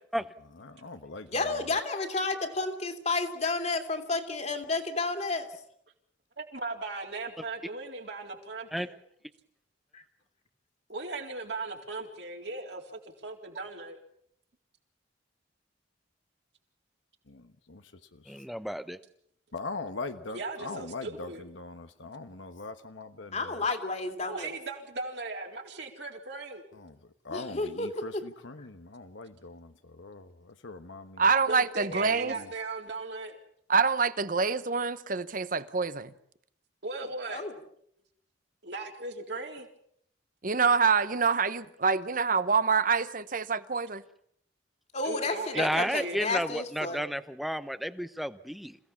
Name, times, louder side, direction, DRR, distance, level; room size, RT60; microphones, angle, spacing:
voice 1, 0.6-1.4 17.3-17.8 18.1-18.3 19.5-23.6 26.7-27.0 27.2-31.2 31.9-32.5, left 3 dB, 85° left, 1.2 m, -41 dB
voice 2, 1.3-5.5 9.9-10.0 23.3-24.5 27.3-28.2 37.3-37.5 44.9-47.0, left 3 dB, 35° left, 2.5 m, -31 dB
voice 3, 6.4-9.0 10.9-14.0 20.3-21.4 24.3-26.6 31.5-33.4 36.8-37.5 38.6-39.7 45.0-46.2, right 3 dB, 65° right, 3.8 m, -38 dB
voice 4, 18.3-19.0 45.6-48.8, equal, ahead, 0.8 m, -32 dB
voice 5, 31.2-32.3 33.7-36.1 40.4-44.0, right 5 dB, 45° right, 1.0 m, -26 dB
27.5 x 17.0 x 7.2 m
head